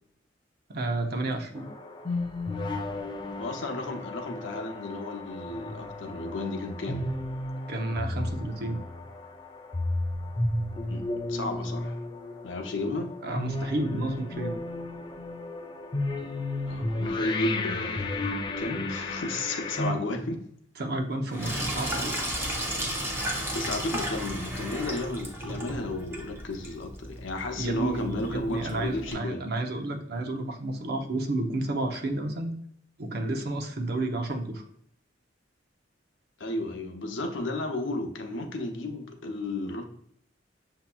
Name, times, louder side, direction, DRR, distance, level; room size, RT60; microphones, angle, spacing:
voice 1, 0.7-1.7 7.7-8.8 13.2-14.5 20.8-22.1 27.5-32.5 33.0-34.6, right 2 dB, 55° right, 4 dB, 0.7 m, -31 dB
sound 1, 1.6-19.9, left 2 dB, 25° left, 0.4 m, -33 dB
voice 2, 3.4-7.1 10.9-12.0 12.4-13.1 16.7-18.3 18.6-20.4 21.4-21.7 23.5-29.5 36.4-39.8, left 2 dB, 80° left, 4 dB, 0.7 m, -33 dB
Sink (filling or washing), 21.3-29.1, equal, 15° right, 0.7 m, -34 dB
6.8 x 2.8 x 2.2 m, 0.68 s
head